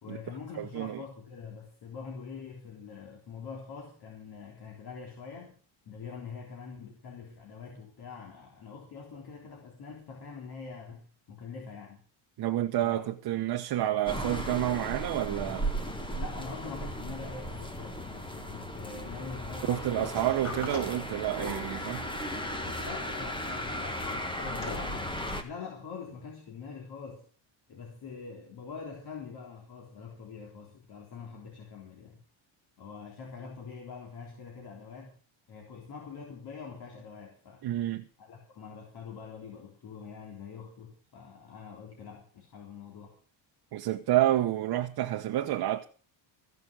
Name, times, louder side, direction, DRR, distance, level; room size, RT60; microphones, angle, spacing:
voice 1, 0.0-5.5 5.9-12.0 12.8-13.0 16.2-20.2 20.5-20.7 22.8-27.3 27.7-32.2 32.8-35.2 35.5-37.6 38.2-43.1, left 5 dB, 50° left, 3.7 m, -44 dB
voice 2, 0.6-1.0 12.4-15.7 19.7-22.0 37.6-38.1 43.7-45.8, right 13 dB, 50° right, 1.1 m, -29 dB
sound 1, 14.1-25.4, equal, 10° left, 1.7 m, -36 dB
Sliding door, 20.0-25.5, left 2 dB, 30° left, 5.0 m, -43 dB
15.5 x 6.8 x 8.0 m
cardioid pair, 140°, 48 cm